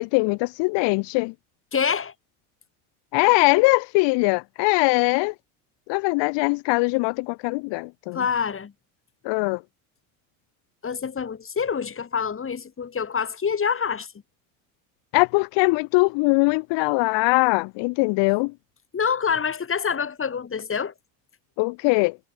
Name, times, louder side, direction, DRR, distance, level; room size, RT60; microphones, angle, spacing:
voice 1, 0.0-1.3 3.1-5.3 5.9-8.2 9.2-9.6 15.1-18.5 21.6-22.2, left 27 dB, 65° left, 2.0 m, -21 dB
voice 2, 1.7-2.1 8.1-8.7 10.8-14.1 18.9-20.9, left 6 dB, 30° left, 4.3 m, -26 dB
supercardioid pair, 90°, 45 cm